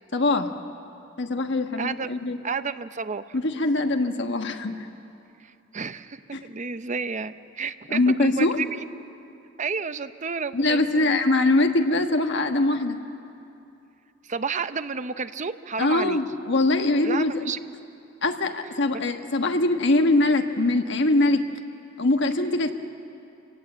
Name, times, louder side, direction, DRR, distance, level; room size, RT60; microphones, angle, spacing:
voice 1, 0.1-0.5 1.2-2.4 3.3-4.8 6.3-6.4 7.9-8.6 10.5-13.0 15.8-17.4 18.2-21.4 22.0-22.7, left 2 dB, 65° left, 6 dB, 1.4 m, -22 dB
voice 2, 1.8-2.1 2.4-3.4 5.4-8.8 9.6-11.2 14.2-16.2 17.0-17.6, right 5 dB, 40° right, 12 dB, 0.7 m, -31 dB
28.0 x 18.0 x 8.0 m, 2.7 s
head